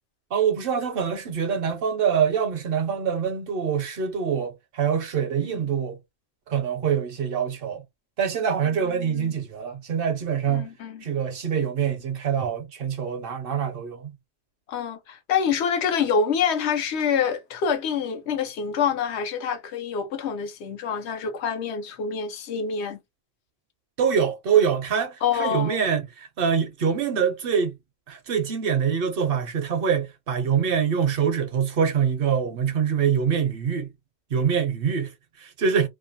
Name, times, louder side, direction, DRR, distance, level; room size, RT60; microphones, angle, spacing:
voice 1, 0.3-6.0 6.5-7.8 8.2-10.7 11.0-14.1 24.0-27.8 28.1-33.9 34.3-35.9, right 7 dB, 65° right, 0.8 m, -25 dB
voice 2, 8.9-9.4 10.5-11.0 14.7-23.0 25.2-25.8, left 6 dB, 85° left, 1.0 m, -26 dB
2.6 x 2.2 x 2.6 m
omnidirectional pair, 1.1 m